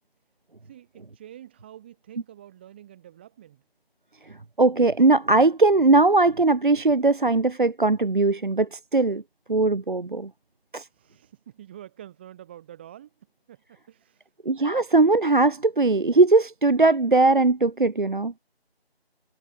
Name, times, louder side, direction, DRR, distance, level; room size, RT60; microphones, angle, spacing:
voice 1, 0.6-3.6 10.7-13.1 13.5-14.3, right 11 dB, 10° right, 3.7 m, -47 dB
voice 2, 4.6-9.2 9.5-10.3 10.7-10.9 14.5-18.3, right 3 dB, 50° right, 0.6 m, -20 dB
figure-of-eight pair, 165°, 32 cm